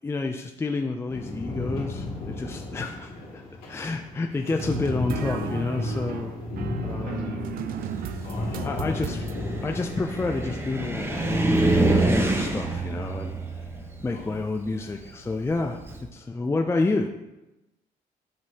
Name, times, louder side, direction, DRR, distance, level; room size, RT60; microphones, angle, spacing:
voice 1, 0.0-3.4 3.7-6.3 6.8-7.5 8.6-9.3 9.6-13.4 14.0-15.8 16.1-17.1, left 3 dB, 15° left, 4 dB, 0.4 m, -29 dB
sound 1, 1.1-12.1, left 2 dB, 90° left, 2.2 m, -34 dB
sound 2, 4.5-9.4, right 10 dB, 80° right, 0.4 m, -36 dB
voice 2, 7.0-7.4 8.2-9.0 14.1-14.4, left 3 dB, 60° left, -2 dB, 2.0 m, -42 dB
Car, 7.8-16.0, right 2 dB, 15° right, 0.9 m, -27 dB
7.8 x 5.3 x 2.8 m, 0.99 s
cardioid pair, 95°, 15 cm